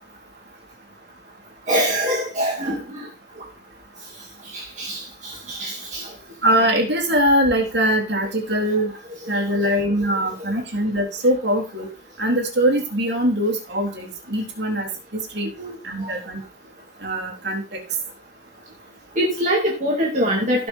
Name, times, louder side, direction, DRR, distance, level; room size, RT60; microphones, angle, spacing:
voice 1, 1.7-3.1 4.5-6.1 9.3-9.7 10.4-10.5 15.6-15.7 16.0-16.1 19.2-20.7, equal, 35° right, -2 dB, 2.6 m, -24 dB
voice 2, 6.4-8.9 9.3-11.9 12.2-15.5 15.8-16.4 17.0-17.8, equal, 55° right, 1 dB, 3.5 m, -22 dB
17.0 x 6.4 x 3.7 m, 0.31 s
head